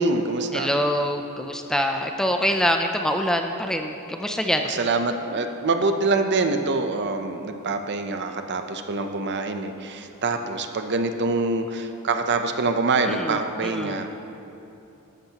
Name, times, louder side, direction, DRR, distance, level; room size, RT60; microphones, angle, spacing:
voice 1, 0.0-0.7 4.7-14.1, right 3 dB, 50° right, 7 dB, 0.7 m, -25 dB
voice 2, 0.5-4.7 13.1-14.0, equal, 5° left, 4 dB, 0.4 m, -25 dB
13.5 x 12.0 x 2.9 m, 2.8 s
head